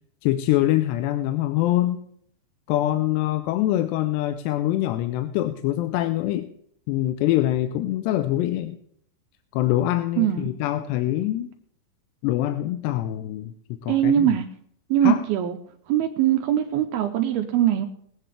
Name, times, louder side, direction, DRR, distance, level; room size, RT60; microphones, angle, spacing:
voice 1, 0.2-2.0 2.7-6.5 6.9-8.8 9.5-11.5 12.2-13.5 13.8-14.3 15.0-15.2, left 14 dB, 85° left, 9 dB, 2.7 m, -24 dB
voice 2, 10.2-10.5 13.9-14.5 14.9-15.6 15.9-17.9, right 11 dB, 80° right, 5 dB, 2.4 m, -21 dB
22.0 x 8.4 x 3.3 m, 0.67 s
omnidirectional pair, 4.9 m